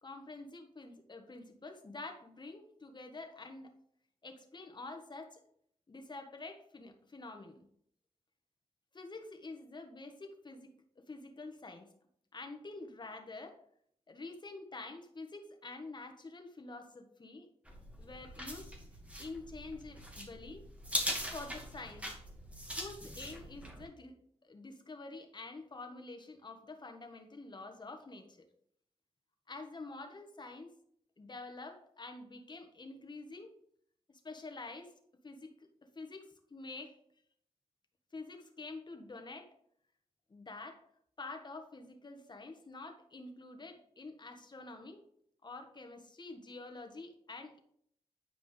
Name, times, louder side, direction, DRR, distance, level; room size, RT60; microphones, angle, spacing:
voice 1, 0.0-3.7 4.2-5.4 5.9-7.7 8.9-11.9 12.3-13.6 14.1-17.5 18.0-18.8 19.2-20.6 21.3-22.1 22.7-24.2 24.4-28.4 29.5-30.7 31.2-33.5 34.1-34.9 35.2-35.7 35.9-37.0 38.1-39.5 40.3-40.8 41.2-45.0 45.4-47.6, left 3 dB, 40° left, 5 dB, 1.4 m, -47 dB
sound 1, 17.7-23.9, equal, 10° right, 2.0 m, -41 dB
9.5 x 5.1 x 3.4 m, 0.67 s
cardioid pair, 60°, 12 cm